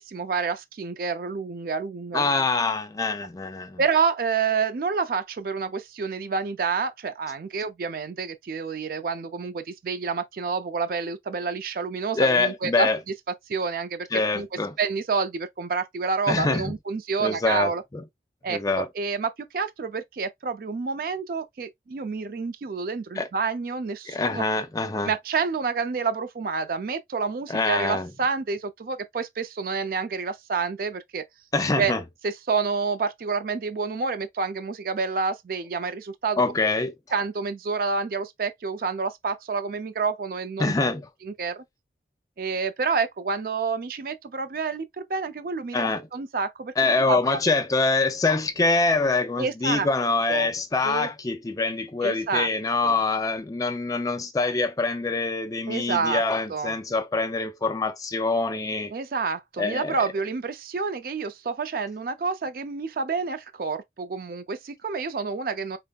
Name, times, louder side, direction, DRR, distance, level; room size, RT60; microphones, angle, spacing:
voice 1, 0.0-2.3 3.8-12.9 13.5-14.1 14.3-14.5 14.8-17.8 18.4-24.4 25.0-31.2 31.8-31.9 32.2-36.4 37.1-40.7 41.2-41.6 42.4-47.4 49.4-49.9 50.3-50.5 50.8-51.1 52.0-52.5 52.8-53.0 55.7-56.2 56.5-56.7 58.9-65.8, right 5 dB, 50° right, 0.4 m, -28 dB
voice 2, 2.1-3.8 12.2-13.0 14.1-14.7 16.3-16.7 17.2-18.0 18.5-18.9 23.2-23.3 24.1-25.1 27.5-28.1 31.5-32.0 36.4-36.9 40.6-41.0 45.7-46.0 46.8-58.9 59.6-60.0, left 3 dB, 20° left, 0.3 m, -25 dB
5.1 x 2.1 x 2.2 m
head